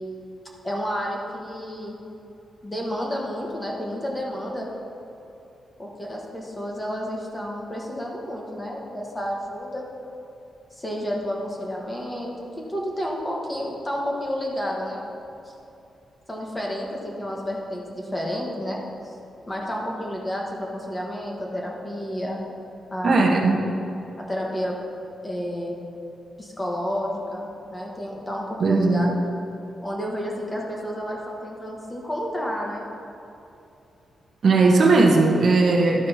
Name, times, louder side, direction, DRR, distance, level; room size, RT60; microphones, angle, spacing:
voice 1, 0.6-2.0 2.6-4.7 5.8-9.9 10.7-15.0 16.3-19.1 19.5-22.4 22.9-23.4 24.2-24.7 25.2-25.8 26.4-29.2 29.8-32.9, equal, 15° left, -2 dB, 1.3 m, -30 dB
voice 2, 23.0-23.6 28.6-29.2 34.4-36.1, right 3 dB, 50° right, 1 dB, 0.9 m, -18 dB
12.0 x 4.3 x 5.5 m, 2.8 s
wide cardioid pair, 155°, 0 cm